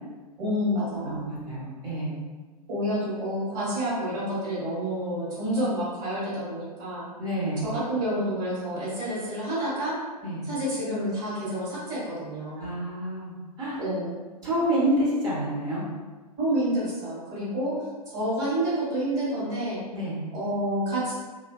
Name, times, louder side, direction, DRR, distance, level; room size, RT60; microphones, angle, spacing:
voice 1, 0.4-1.2 2.7-7.0 7.6-9.9 10.5-12.7 13.8-14.1 16.4-17.7 18.1-19.8 20.3-21.1, equal, 40° right, -9 dB, 1.2 m, -28 dB
voice 2, 1.0-2.2 7.2-7.7 10.2-10.4 12.6-13.8 14.4-15.8 19.9-20.2, right 1 dB, 20° right, -8 dB, 0.7 m, -28 dB
2.6 x 2.2 x 2.2 m, 1.3 s
figure-of-eight pair, 105°, 20 cm